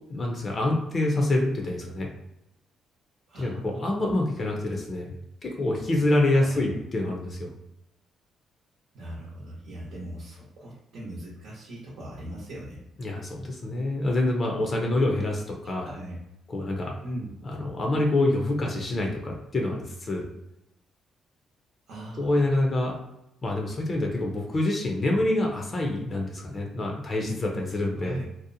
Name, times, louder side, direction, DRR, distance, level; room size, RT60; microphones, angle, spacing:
voice 1, 0.1-2.1 3.4-5.1 5.4-7.5 13.0-15.9 16.5-16.9 17.4-20.3 22.2-22.9 23.4-28.2, left 2 dB, 40° left, 0 dB, 0.5 m, -26 dB
voice 2, 3.3-4.0 6.3-6.7 8.9-12.8 15.6-16.2 17.0-17.3 21.9-22.6 28.0-28.2, right 1 dB, 75° right, -5 dB, 0.8 m, -39 dB
2.7 x 2.0 x 2.6 m, 0.87 s
cardioid pair, 90°, 0 cm